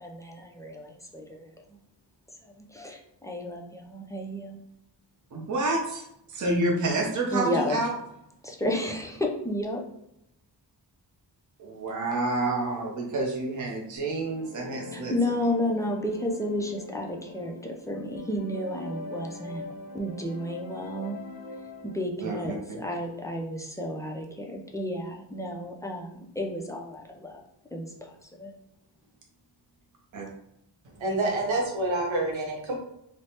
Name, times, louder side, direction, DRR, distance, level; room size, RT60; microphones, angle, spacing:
voice 1, 0.0-1.8 2.4-4.6 7.3-7.8 8.4-9.8 14.9-19.6 19.9-21.2 21.8-27.4 27.7-28.5, left 1 dB, 10° left, 0 dB, 0.3 m, -32 dB
voice 2, 5.3-7.9 11.6-15.1 22.2-22.8 30.1-30.3, right 2 dB, 45° right, 0 dB, 0.6 m, -29 dB
sound 1, 14.1-22.0, left 3 dB, 80° left, 0.7 m, -42 dB
voice 3, 31.0-32.7, right 2 dB, 85° right, 0 dB, 0.9 m, -27 dB
3.2 x 2.1 x 2.8 m, 0.79 s
wide cardioid pair, 105°, 45 cm